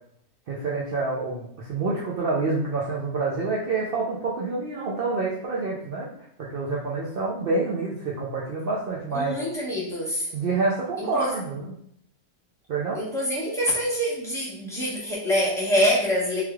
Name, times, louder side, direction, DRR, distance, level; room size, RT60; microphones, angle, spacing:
voice 1, 0.5-6.1 6.4-9.4 10.3-11.7 12.7-13.0, right 3 dB, 55° right, -5 dB, 0.7 m, -27 dB
voice 2, 9.1-10.3 11.0-11.3 12.9-16.4, equal, 5° left, -6 dB, 0.9 m, -25 dB
3.5 x 3.0 x 2.3 m, 0.68 s
omnidirectional pair, 1.3 m